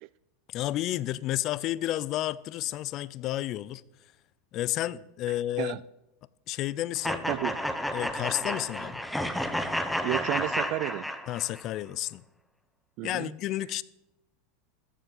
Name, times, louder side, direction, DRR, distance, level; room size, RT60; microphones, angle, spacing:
voice 1, 0.5-3.8 4.5-5.8 6.5-7.3 7.9-9.0 11.3-12.2 13.0-13.8, left 14 dB, 45° left, 0.5 m, -31 dB
sound 1, 7.0-11.6, equal, 5° left, 1.0 m, -31 dB
voice 2, 10.0-11.1 13.0-13.3, right 20 dB, 55° right, 0.3 m, -31 dB
13.0 x 7.5 x 6.6 m
hypercardioid pair, 110°, 0 cm